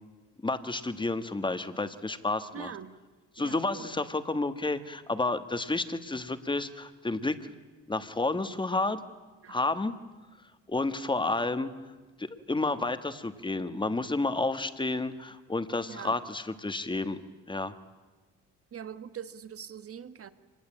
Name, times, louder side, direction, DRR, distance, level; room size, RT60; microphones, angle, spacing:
voice 1, 0.4-2.7 3.3-7.5 7.9-9.0 9.5-9.9 10.7-11.7 12.2-17.2 17.5-17.8, left 2 dB, 15° left, 1.5 m, -30 dB
voice 2, 2.5-2.9 3.4-4.0 9.4-9.6 15.8-16.2 18.7-20.3, right 8 dB, 50° right, 1.4 m, -43 dB
25.0 x 20.0 x 8.7 m
cardioid pair, 90°, 30 cm